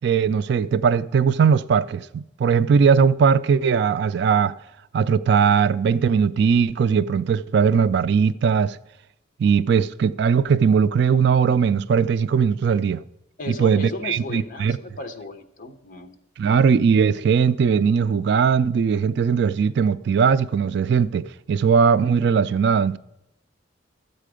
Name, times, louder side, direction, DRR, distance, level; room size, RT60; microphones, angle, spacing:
voice 1, 0.0-4.5 4.9-8.8 9.4-13.0 13.5-14.8 16.4-23.0, right 6 dB, 65° right, 0.3 m, -19 dB
voice 2, 13.4-16.1, left 3 dB, 45° left, 1.0 m, -35 dB
12.5 x 8.3 x 5.0 m
head